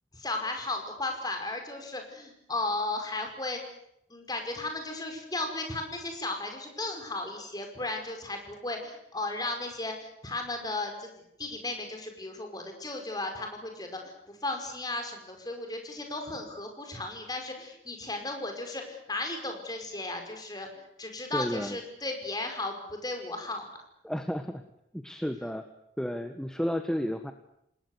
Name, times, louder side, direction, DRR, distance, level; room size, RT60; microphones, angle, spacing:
voice 1, 0.1-3.6 4.1-11.1 11.4-20.7 21.0-23.6, left 2 dB, 20° left, 4 dB, 5.3 m, -35 dB
voice 2, 21.3-21.8 24.0-24.6 24.9-25.7 26.0-27.3, equal, 5° left, 7 dB, 1.3 m, -32 dB
28.0 x 20.0 x 8.0 m, 0.77 s
head